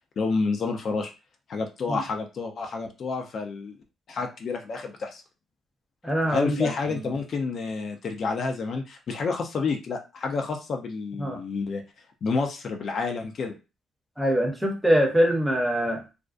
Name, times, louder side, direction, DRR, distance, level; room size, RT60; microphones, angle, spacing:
voice 1, 0.2-1.1 1.5-3.7 4.1-5.2 6.3-11.8 12.2-13.6, left 4 dB, 55° left, 4 dB, 0.5 m, -29 dB
voice 2, 6.0-6.7 11.2-11.4 14.2-16.0, equal, 5° right, 2 dB, 0.7 m, -23 dB
2.4 x 2.1 x 2.4 m, 0.30 s
cardioid pair, 90°, 0 cm